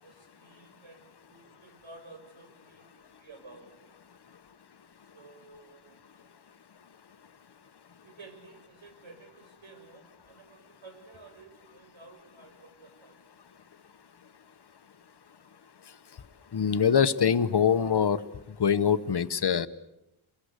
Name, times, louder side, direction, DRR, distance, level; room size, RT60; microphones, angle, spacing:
voice 1, 0.0-4.0 5.1-6.2 8.0-13.2, right 3 dB, 65° right, 5 dB, 7.2 m, -53 dB
voice 2, 16.5-18.2 18.6-19.7, left 7 dB, 55° left, 13 dB, 1.1 m, -24 dB
28.5 x 23.5 x 8.2 m, 0.90 s
wide cardioid pair, 140°, 49 cm